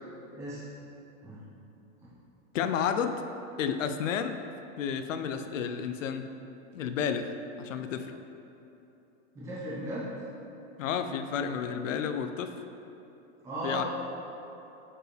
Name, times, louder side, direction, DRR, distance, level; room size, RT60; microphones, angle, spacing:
voice 1, 2.5-3.1 3.6-4.4 4.8-6.2 6.7-8.1 10.8-12.5 13.6-13.8, left 7 dB, 85° left, 8 dB, 0.6 m, -31 dB
voice 2, 9.3-10.1 13.4-13.8, right 1 dB, 10° right, -10 dB, 1.1 m, -36 dB
8.7 x 4.5 x 3.4 m, 2.9 s
supercardioid pair, 175°, 37 cm